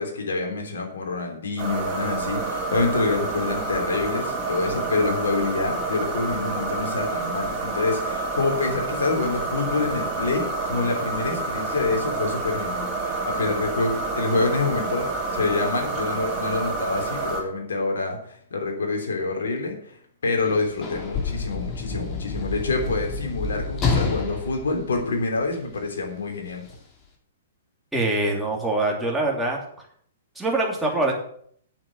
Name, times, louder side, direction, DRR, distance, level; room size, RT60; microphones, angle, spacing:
voice 1, 0.0-19.9 20.2-26.6, left 3 dB, 70° left, 2 dB, 3.4 m, -27 dB
sound 1, 1.6-17.4, right 3 dB, 25° right, 4.2 m, -28 dB
Sliding door / Slam, 20.4-25.8 26.7-26.8, left 4 dB, 30° left, 2.7 m, -29 dB
voice 2, 27.9-29.6 30.3-31.1, right 2 dB, 5° right, -2 dB, 3.3 m, -24 dB
8.5 x 7.4 x 7.9 m, 0.63 s
figure-of-eight pair, 115°, 0 cm